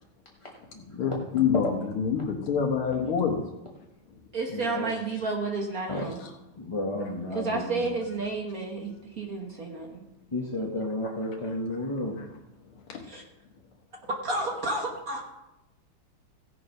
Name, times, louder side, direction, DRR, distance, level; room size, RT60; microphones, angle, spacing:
voice 1, 0.4-1.1 4.5-4.9 5.9-6.0 6.6-7.9 10.3-12.2, left 1 dB, 20° left, -2 dB, 0.8 m, -33 dB
voice 2, 1.0-3.4 6.2-6.3 12.2-12.3 12.9-13.0, left 7 dB, 85° left, 1 dB, 2.2 m, -26 dB
voice 3, 4.3-6.2 7.3-10.0 13.0-13.2 14.2-15.2, right 3 dB, 45° right, 1 dB, 1.7 m, -31 dB
16.0 x 6.8 x 5.4 m, 0.92 s
omnidirectional pair, 2.3 m